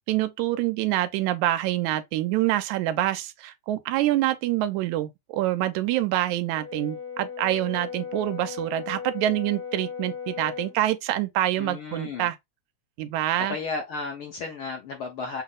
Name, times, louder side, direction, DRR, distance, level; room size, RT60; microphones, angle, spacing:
voice 1, 0.1-12.4 13.0-13.6, right 14 dB, 90° right, 2.0 m, -26 dB
Brass instrument, 6.5-10.8, left 7 dB, 40° left, 0.7 m, -37 dB
voice 2, 11.6-12.3 13.4-15.4, left 4 dB, 70° left, 1.3 m, -33 dB
6.0 x 2.0 x 3.8 m
omnidirectional pair, 3.4 m